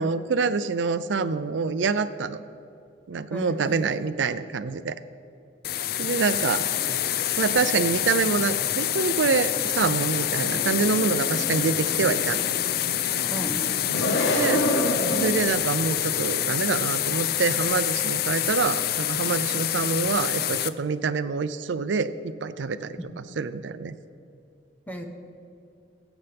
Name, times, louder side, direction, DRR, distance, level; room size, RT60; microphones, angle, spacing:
voice 1, 0.0-2.4 3.1-5.0 6.0-6.7 7.4-12.4 14.3-14.7 15.1-23.0 23.4-23.9, right 5 dB, 85° right, 13 dB, 0.5 m, -26 dB
voice 2, 3.3-4.1 13.3-14.0 23.0-23.2 24.9-25.0, right 1 dB, 10° left, 4 dB, 1.0 m, -36 dB
sound 1, 5.6-20.7, left 11 dB, 55° left, 0.4 m, -26 dB
sound 2, 10.4-15.5, left 1 dB, 90° left, 1.3 m, -29 dB
22.0 x 8.1 x 3.5 m, 2.5 s
head